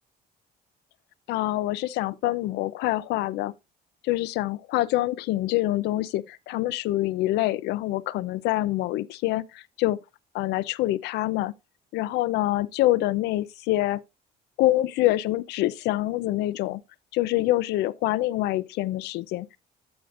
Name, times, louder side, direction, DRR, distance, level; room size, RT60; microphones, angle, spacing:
voice 1, 1.3-3.5 4.0-10.0 10.3-11.5 11.9-14.0 14.6-16.8 17.1-19.6, left 16 dB, 85° left, 0.6 m, -26 dB
15.0 x 5.0 x 2.5 m
cardioid pair, 110°, 17 cm